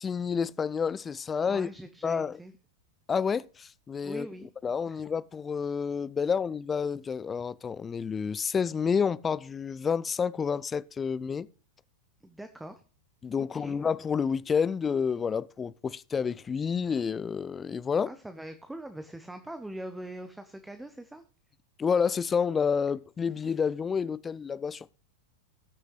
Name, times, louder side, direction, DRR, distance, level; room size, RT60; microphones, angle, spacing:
voice 1, 0.0-1.7 2.0-2.4 3.1-4.3 4.6-11.5 13.2-18.1 21.8-24.9, left 6 dB, 20° left, 0.4 m, -29 dB
voice 2, 1.5-2.5 4.0-4.5 4.9-5.0 12.2-12.8 13.5-13.8 18.1-21.2, right 1 dB, 5° right, 0.7 m, -42 dB
19.0 x 6.5 x 3.1 m
figure-of-eight pair, 90°, 0 cm